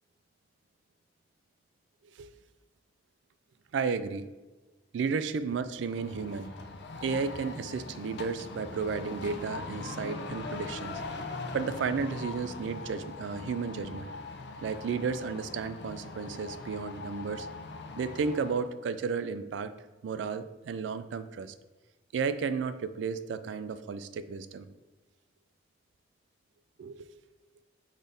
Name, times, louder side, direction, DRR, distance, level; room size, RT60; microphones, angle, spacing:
voice 1, 3.7-4.3 4.9-6.5 7.0-11.0 11.5-14.1 14.6-17.5 18.0-19.8 20.0-21.5 22.1-24.7 26.8-27.1, right 5 dB, 80° right, 12 dB, 0.3 m, -33 dB
sound 1, 5.9-18.7, left 3 dB, 65° left, 0.5 m, -41 dB
3.7 x 3.5 x 4.0 m, 1.2 s
head